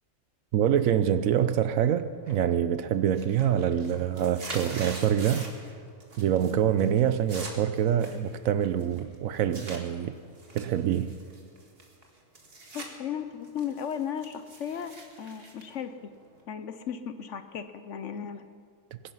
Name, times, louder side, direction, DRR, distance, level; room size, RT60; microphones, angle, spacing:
voice 1, 0.5-5.5 6.2-10.1 10.5-11.1, right 9 dB, 70° right, 1.0 m, -25 dB
sound 1, 2.3-2.7 3.0-5.7 6.0-6.5 6.8-9.8 10.4-12.9 13.3-16.4, right 2 dB, 40° right, 1.9 m, -44 dB
voice 2, 12.7-16.1 16.5-18.5, left 8 dB, 60° left, 0.9 m, -36 dB
22.0 x 10.0 x 5.6 m
omnidirectional pair, 1.6 m